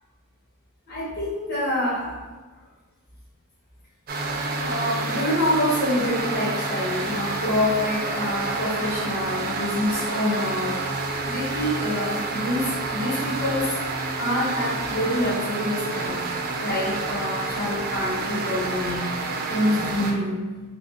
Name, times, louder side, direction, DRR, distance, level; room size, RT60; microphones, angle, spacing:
voice 1, 0.9-2.2 4.6-10.8 11.2-13.7 14.2-16.2 16.6-19.1 19.5-20.4, left 1 dB, 50° left, -7 dB, 1.2 m, -26 dB
sound 1, 4.1-20.1, right 3 dB, 45° right, 0.4 m, -29 dB
3.5 x 2.1 x 3.5 m, 1.3 s
head